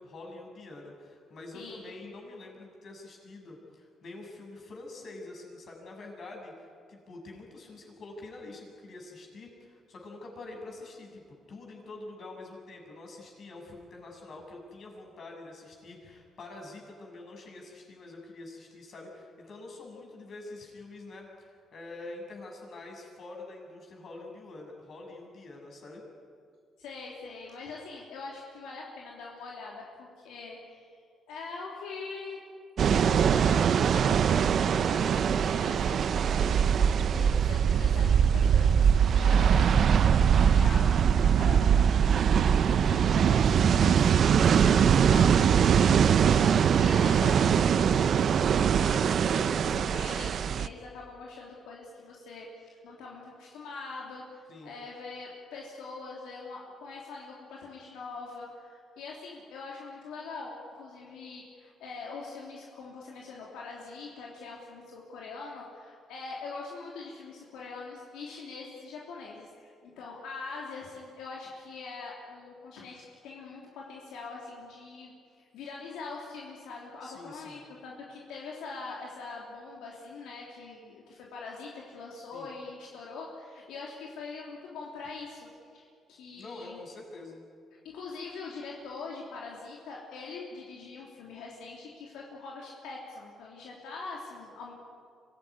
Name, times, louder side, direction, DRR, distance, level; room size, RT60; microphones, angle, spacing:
voice 1, 0.0-26.0 54.5-54.7 77.0-77.6 82.3-82.5 86.3-87.4, left 2 dB, 55° left, 0 dB, 6.9 m, -46 dB
voice 2, 1.5-2.1 26.8-31.0 31.3-32.4 32.9-36.7 37.1-86.8 87.8-94.7, left 4 dB, 90° left, -3 dB, 3.2 m, -43 dB
sound 1, 32.8-50.7, right 7 dB, 60° right, 0.7 m, -22 dB
24.5 x 17.5 x 9.9 m, 2.2 s
cardioid pair, 90°, 0 cm